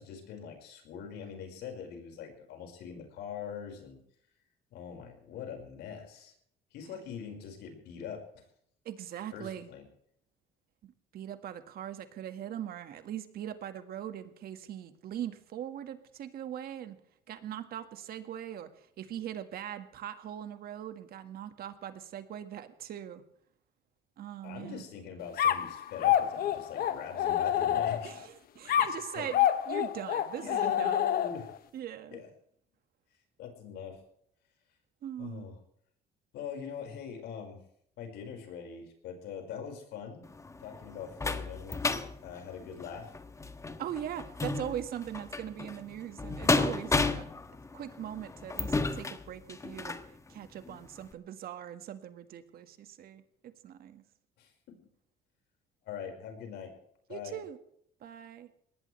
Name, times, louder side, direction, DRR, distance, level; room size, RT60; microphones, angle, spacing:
voice 1, 0.0-4.0 4.7-6.3 6.7-8.4 9.3-9.8 24.4-28.1 28.9-29.3 30.4-31.5 32.1-32.3 33.4-34.0 35.2-35.5 36.3-37.6 38.0-40.2 40.6-43.1 54.4-54.5 55.8-56.7 57.1-57.4, left 7 dB, 80° left, 3 dB, 5.4 m, -43 dB
voice 2, 8.9-9.7 10.8-17.0 17.3-23.2 24.2-24.9 28.0-31.0 31.7-32.2 35.0-35.5 43.8-47.3 47.7-50.0 50.3-54.0 57.1-57.6 58.0-58.5, right 10 dB, 65° right, 9 dB, 1.9 m, -41 dB
sound 1, 25.4-28.2 28.7-31.6, left 10 dB, 60° left, 1.2 m, -28 dB
sound 2, 40.2-50.1 50.6-50.8 51.1-51.2, left 3 dB, 15° left, 1.3 m, -33 dB
22.0 x 18.5 x 3.4 m, 0.69 s
cardioid pair, 110°, 17 cm